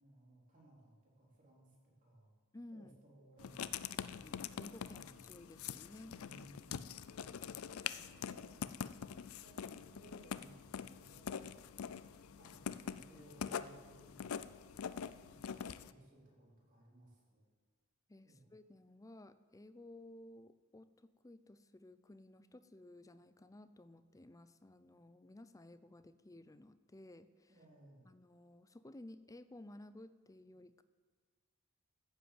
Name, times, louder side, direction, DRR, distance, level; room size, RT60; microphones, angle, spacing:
voice 1, 0.0-1.8 2.0-2.3 2.7-4.3 4.8-5.6 6.1-7.0 7.6-8.6 9.4-11.6 12.3-14.5 15.2-17.5 18.2-18.5 27.5-28.1, right 1 dB, 40° right, -4 dB, 4.0 m, -62 dB
voice 2, 2.5-3.0 3.9-6.2 18.1-27.5 28.1-30.8, left 1 dB, 15° left, 13 dB, 0.5 m, -56 dB
Writing, 3.4-15.9, left 7 dB, 85° left, 0.5 m, -45 dB
14.0 x 8.1 x 8.0 m, 1.5 s
head